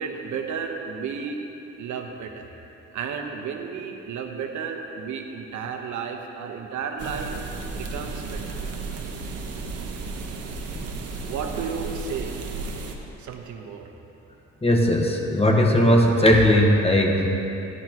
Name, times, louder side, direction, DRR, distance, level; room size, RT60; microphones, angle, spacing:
voice 1, 0.0-1.5 1.8-2.5 2.9-8.4 11.3-12.5 13.2-13.9, right 6 dB, 75° right, 3 dB, 1.1 m, -33 dB
sound 1, 7.0-13.0, right 3 dB, 55° right, 1.3 m, -33 dB
voice 2, 14.6-17.3, equal, 20° left, 1 dB, 1.4 m, -18 dB
16.5 x 11.0 x 3.0 m, 2.9 s
cardioid pair, 90°, 30 cm